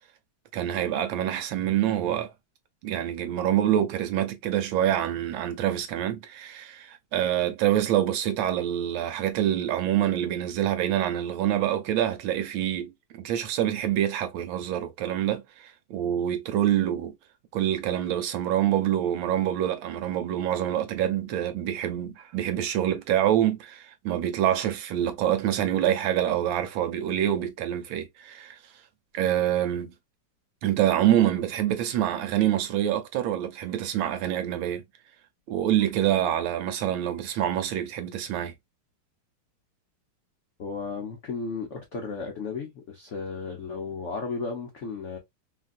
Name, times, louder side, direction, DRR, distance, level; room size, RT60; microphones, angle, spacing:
voice 1, 0.5-2.3 2.8-17.1 17.5-28.6 29.1-29.9 30.6-34.8 35.5-38.5, right 11 dB, 75° right, 1.4 m, -26 dB
voice 2, 40.6-45.2, left 4 dB, 80° left, 0.6 m, -34 dB
3.3 x 2.5 x 2.5 m
omnidirectional pair, 2.3 m